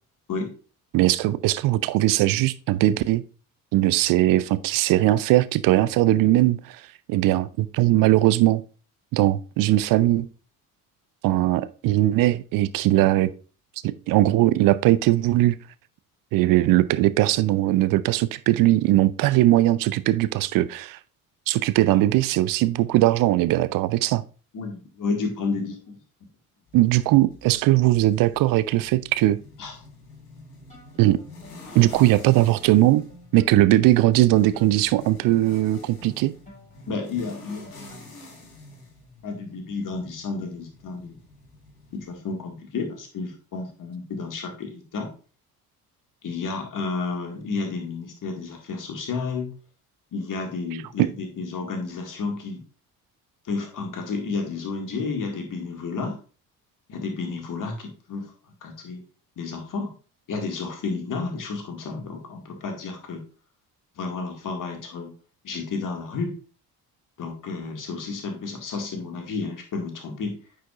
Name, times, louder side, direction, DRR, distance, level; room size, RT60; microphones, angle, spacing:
voice 1, 0.9-3.2 3.7-6.8 7.1-8.6 9.1-10.3 11.2-13.3 13.8-15.6 16.3-21.0 21.5-24.2 26.7-29.4 31.0-31.2 31.7-33.1 33.3-36.3, right 16 dB, 50° right, 0.6 m, -20 dB
voice 2, 24.5-26.0 29.6-29.7 36.9-38.0 39.2-41.2 41.9-45.1 46.2-49.5 50.1-52.6 53.4-56.2 56.9-58.2 58.6-59.0 59.4-59.9 60.3-63.2 64.0-65.1 65.4-66.3 67.2-70.4, left 4 dB, 45° left, 2.1 m, -31 dB
sound 1, 26.7-42.2, left 2 dB, 85° left, 1.5 m, -48 dB
sound 2, 30.7-38.3, left 1 dB, 15° left, 3.4 m, -51 dB
9.1 x 5.1 x 2.5 m
figure-of-eight pair, 50°, 45 cm